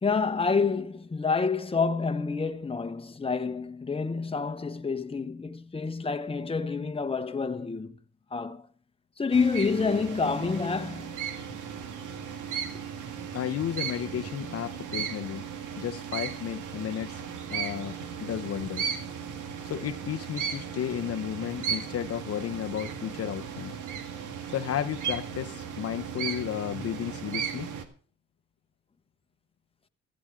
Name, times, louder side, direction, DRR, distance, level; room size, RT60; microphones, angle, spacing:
voice 1, 0.0-8.0 8.3-8.7 9.2-11.2, left 4 dB, 20° left, 1.0 m, -28 dB
sound 1, 9.3-27.8, right 7 dB, 85° right, 1.8 m, -36 dB
voice 2, 13.3-15.5 15.8-17.2 17.5-18.9 19.6-23.7 24.5-27.7, left 10 dB, 50° left, 0.7 m, -33 dB
16.0 x 13.0 x 3.7 m
cardioid pair, 90°, 30 cm